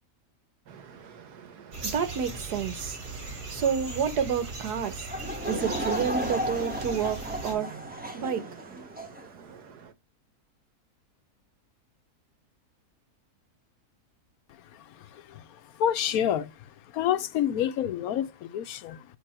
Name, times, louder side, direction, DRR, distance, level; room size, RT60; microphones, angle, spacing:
voice 1, 0.7-9.9, right 7 dB, 85° right, 1.5 m, -31 dB
sound 1, 1.7-7.5, right 2 dB, 55° right, 2.2 m, -39 dB
Laughter / Crowd, 5.1-9.3, equal, 10° right, 0.8 m, -34 dB
voice 2, 14.7-15.4 15.8-16.5 16.9-19.0, left 10 dB, 75° left, 1.0 m, -28 dB
8.5 x 2.8 x 4.3 m
omnidirectional pair, 1.7 m